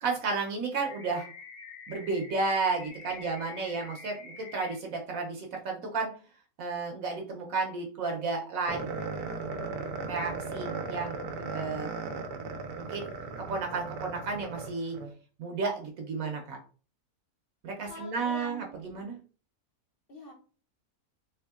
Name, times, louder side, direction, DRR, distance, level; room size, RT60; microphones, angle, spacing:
voice 1, 0.0-1.3 1.9-6.1 6.6-8.8 10.1-11.9 12.8-13.1 13.5-15.0 15.4-16.6 17.6-19.2, right 4 dB, 70° right, 2 dB, 1.0 m, -32 dB
sound 1, 0.8-4.8, left 5 dB, 80° left, 1.2 m, -47 dB
sound 2, 8.7-15.1, right 4 dB, 90° right, 1.2 m, -37 dB
voice 2, 17.9-18.8 20.1-20.3, left 2 dB, 60° left, 1 dB, 0.6 m, -44 dB
3.5 x 3.2 x 2.3 m, 0.39 s
omnidirectional pair, 1.6 m